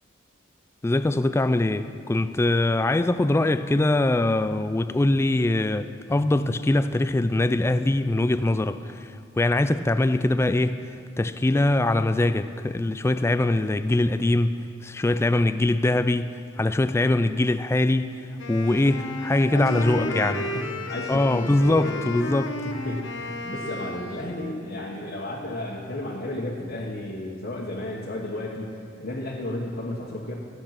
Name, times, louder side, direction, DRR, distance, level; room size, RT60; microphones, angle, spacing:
voice 1, 0.8-8.9 9.4-10.8 11.2-14.5 14.8-16.3 16.6-18.2 18.5-20.4 21.1-22.5, left 2 dB, 15° left, 0.3 m, -22 dB
Wind instrument woodwind instrument, 18.4-24.6, left 2 dB, 75° left, 0.9 m, -33 dB
voice 2, 19.5-22.1 22.6-30.3, left 1 dB, 55° left, 1.4 m, -33 dB
15.0 x 8.7 x 5.9 m
head